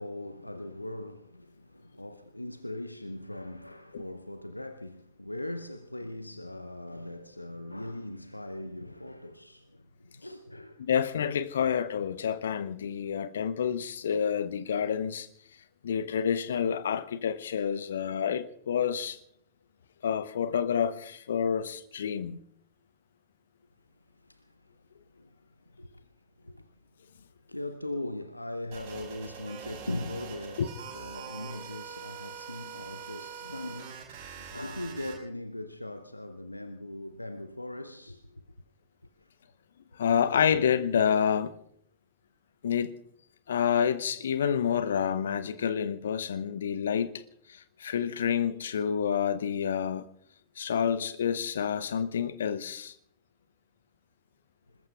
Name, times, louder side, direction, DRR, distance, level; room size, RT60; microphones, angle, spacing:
voice 1, 0.0-10.8 24.1-24.7 25.1-25.4 25.7-26.7 27.1-27.2 27.5-38.5 39.2-39.3, left 1 dB, 85° left, 0.6 m, -40 dB
voice 2, 10.8-15.3 15.8-19.2 20.0-22.4 39.9-41.5 42.6-43.0 43.5-47.2 47.5-50.0 50.6-52.9, left 8 dB, 65° left, 0.9 m, -28 dB
sound 1, 28.7-35.1, right 7 dB, 50° right, 6.7 m, -43 dB
26.5 x 20.5 x 2.4 m
figure-of-eight pair, 90°, 0 cm